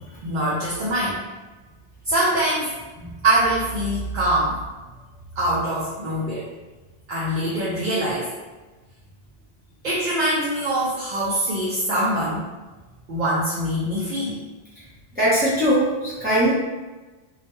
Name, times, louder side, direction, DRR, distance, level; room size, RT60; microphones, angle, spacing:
voice 1, 0.2-1.2 2.1-2.7 3.2-4.6 5.4-6.4 7.1-8.3 9.8-12.4 13.1-14.4, right 1 dB, 55° right, -7 dB, 0.6 m, -23 dB
voice 2, 15.2-16.5, right 1 dB, 10° right, -10 dB, 0.7 m, -20 dB
2.3 x 2.1 x 3.0 m, 1.2 s
omnidirectional pair, 1.0 m